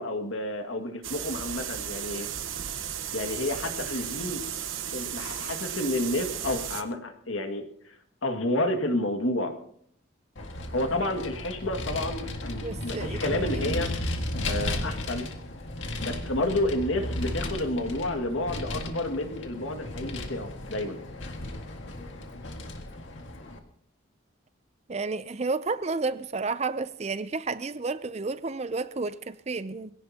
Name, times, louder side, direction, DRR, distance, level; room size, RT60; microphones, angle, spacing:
voice 1, 0.0-2.3 3.1-4.4 4.9-7.6 8.2-9.5 10.7-13.9 14.4-15.3 16.0-21.0, left 1 dB, 90° left, 2.0 m, -30 dB
sound 1, 1.0-6.8, right 9 dB, 85° right, 1.2 m, -35 dB
Vehicle, 10.3-23.6, left 1 dB, 70° left, 1.8 m, -35 dB
voice 2, 12.6-13.8 24.9-29.9, right 3 dB, 35° right, 0.5 m, -31 dB
22.0 x 16.5 x 2.9 m
head